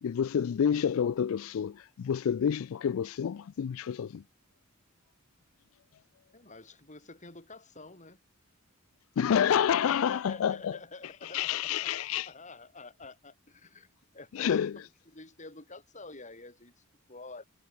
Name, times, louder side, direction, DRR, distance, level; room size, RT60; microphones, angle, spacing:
voice 1, 0.0-4.2 9.2-10.7 11.3-12.3 14.4-14.7, left 8 dB, 70° left, 0.3 m, -28 dB
voice 2, 6.3-8.2 9.3-13.9 14.1-17.5, left 3 dB, 35° left, 6.3 m, -49 dB
head